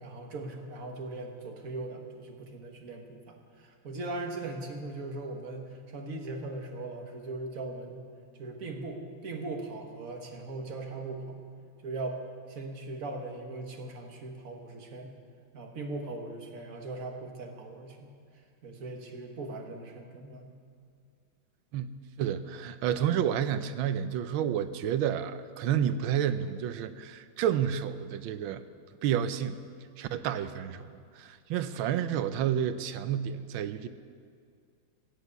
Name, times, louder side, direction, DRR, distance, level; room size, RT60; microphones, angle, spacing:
voice 1, 0.0-8.1 8.4-11.4 11.8-12.2 12.5-15.1 15.5-18.1 18.6-20.5, right 2 dB, 45° right, 2 dB, 1.7 m, -39 dB
voice 2, 22.2-28.6 29.0-29.6 30.0-33.9, right 9 dB, 80° right, 12 dB, 1.4 m, -30 dB
15.0 x 8.2 x 8.2 m, 2.2 s
omnidirectional pair, 2.3 m